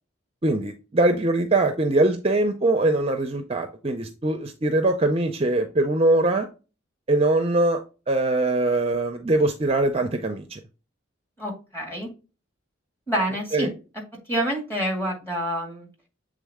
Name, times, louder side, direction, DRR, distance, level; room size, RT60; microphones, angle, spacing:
voice 1, 0.4-6.5 7.1-10.6 13.5-13.7, right 2 dB, 30° right, 6 dB, 0.5 m, -22 dB
voice 2, 11.4-12.1 13.1-13.7 14.3-15.9, right 1 dB, 10° left, -2 dB, 2.0 m, -27 dB
7.4 x 3.7 x 3.5 m, 0.33 s
head